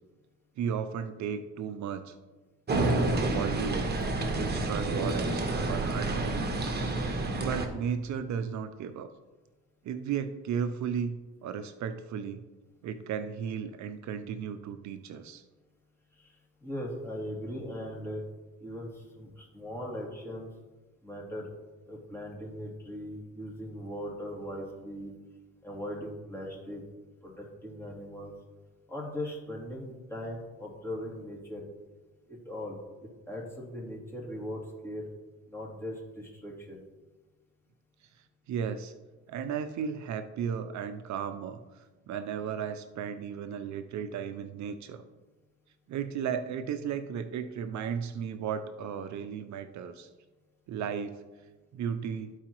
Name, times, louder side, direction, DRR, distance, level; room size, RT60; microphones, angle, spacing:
voice 1, 0.6-2.2 3.0-3.8 4.2-6.9 7.4-9.1 9.8-12.4 12.8-15.4 38.5-38.9 39.3-45.0 45.9-50.1 50.7-51.2 51.7-52.3, right 7 dB, 70° right, 10 dB, 0.5 m, -35 dB
sound 1, 2.7-7.7, right 2 dB, 35° right, 1.2 m, -29 dB
voice 2, 16.6-18.2 18.6-20.5 21.0-21.5 21.9-25.1 25.6-26.8 27.2-28.3 28.9-31.7 32.3-35.1 35.5-36.8, equal, 10° left, -4 dB, 2.6 m, -39 dB
12.5 x 4.8 x 3.0 m, 1.2 s
cardioid pair, 90°, 30 cm